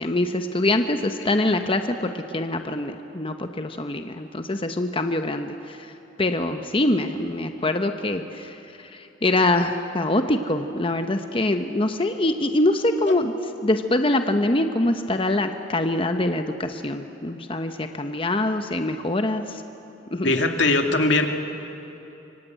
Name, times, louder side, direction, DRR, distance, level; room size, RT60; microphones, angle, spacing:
voice 1, 0.0-5.9 6.2-13.3 13.6-19.6 20.1-20.3, left 1 dB, 30° left, 7 dB, 1.0 m, -24 dB
voice 2, 20.2-21.3, left 2 dB, 80° left, 5 dB, 2.2 m, -20 dB
25.5 x 24.0 x 9.2 m, 3.0 s
head